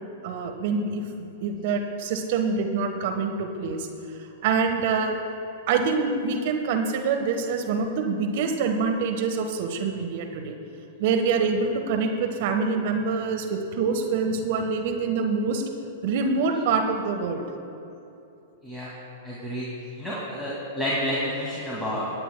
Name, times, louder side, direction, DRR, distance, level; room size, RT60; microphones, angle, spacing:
voice 1, 0.2-3.9 4.2-5.2 5.7-10.6 11.0-15.7 16.0-17.4, right 4 dB, 55° right, 5 dB, 1.0 m, -25 dB
voice 2, 19.2-19.7 20.0-22.1, equal, 5° left, -8 dB, 2.2 m, -29 dB
24.5 x 9.0 x 2.2 m, 2.8 s
figure-of-eight pair, 100°, 0 cm